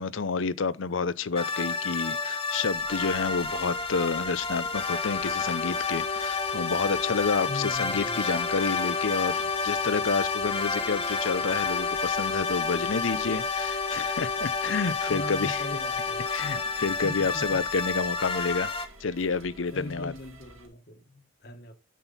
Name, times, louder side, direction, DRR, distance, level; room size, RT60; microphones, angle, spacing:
voice 1, 0.0-15.7 16.3-18.7 19.0-20.1, left 4 dB, 75° left, 0.6 m, -29 dB
sound 1, 1.4-18.9, left 4 dB, 25° left, 1.1 m, -30 dB
sound 2, 2.7-20.7, right 2 dB, 90° right, 2.6 m, -51 dB
voice 2, 7.5-8.3 15.1-16.3 16.6-16.7 17.0-17.6 19.7-21.7, left 2 dB, 50° left, 1.7 m, -40 dB
9.2 x 6.2 x 4.1 m
head